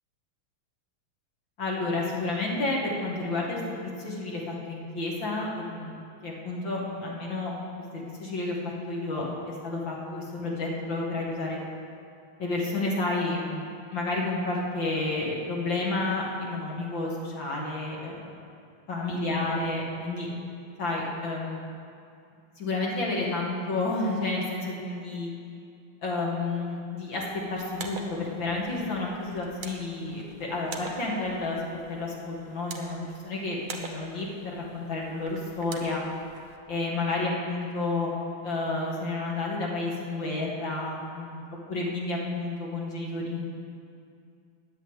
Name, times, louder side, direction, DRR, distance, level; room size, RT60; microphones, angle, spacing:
voice 1, 1.6-7.5 7.9-11.6 12.4-18.3 18.9-20.3 20.8-21.6 22.6-25.3 26.0-31.6 31.9-36.1 36.7-38.1 38.4-41.4 41.7-43.5, left 2 dB, 60° left, -3 dB, 2.5 m, -31 dB
sound 1, 27.6-36.6, right 4 dB, 70° right, 1.9 m, -45 dB
10.5 x 9.3 x 8.1 m, 2.4 s
omnidirectional pair, 2.4 m